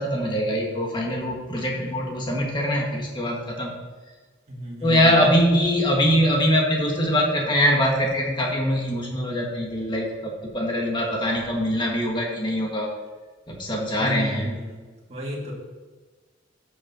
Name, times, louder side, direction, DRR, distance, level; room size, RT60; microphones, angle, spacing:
voice 1, 0.0-3.7 4.8-12.9 13.5-14.5, equal, 25° left, -1 dB, 1.7 m, -23 dB
voice 2, 4.5-5.2 14.0-14.8 15.1-15.5, equal, 35° right, -3 dB, 2.2 m, -32 dB
13.0 x 6.6 x 2.9 m, 1.3 s
head